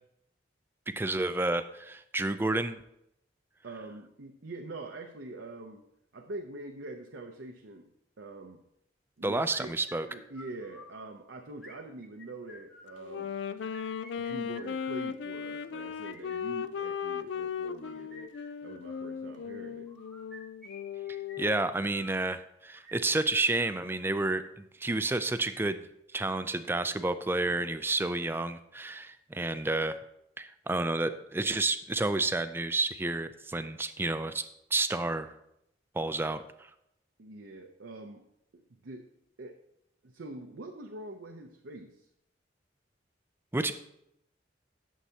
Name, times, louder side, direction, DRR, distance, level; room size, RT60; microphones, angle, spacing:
voice 1, 1.0-2.8 9.2-10.1 21.4-25.8 26.1-29.9 30.4-35.3 35.9-36.4 43.5-43.7, right 2 dB, 10° right, 11 dB, 0.4 m, -30 dB
voice 2, 3.6-5.8 6.1-7.9 8.2-8.6 9.2-9.8 10.1-13.3 14.2-19.9 37.2-38.2 38.5-39.1 39.4-39.6 40.0-42.1, right 2 dB, 85° right, 3 dB, 0.7 m, -44 dB
sound 1, 9.5-11.0 11.6-13.0 13.5-15.0 15.5-17.1 17.7-19.1 19.9-22.2 22.7-24.2, left 1 dB, 5° left, 1.1 m, -53 dB
Wind instrument woodwind instrument, 13.0-21.7, left 7 dB, 80° left, 0.4 m, -37 dB
11.0 x 7.4 x 2.8 m, 0.79 s
head